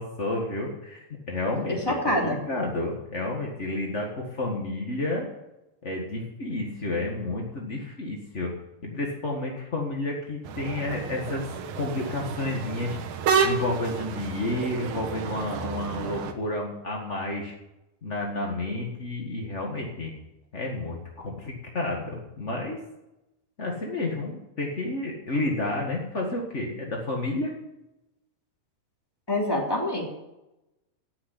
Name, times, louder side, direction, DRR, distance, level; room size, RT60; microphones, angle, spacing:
voice 1, 0.0-5.3 5.8-8.5 8.8-11.5 11.8-13.0 13.4-17.5 18.0-20.2 20.5-22.8 23.6-27.5, left 2 dB, 50° left, 0 dB, 0.8 m, -30 dB
voice 2, 1.9-2.3 29.3-30.0, left 1 dB, 5° left, -1 dB, 2.7 m, -25 dB
sound 1, 10.4-16.3, right 6 dB, 70° right, 2.7 m, -30 dB
17.5 x 6.5 x 9.9 m, 0.95 s
omnidirectional pair, 4.4 m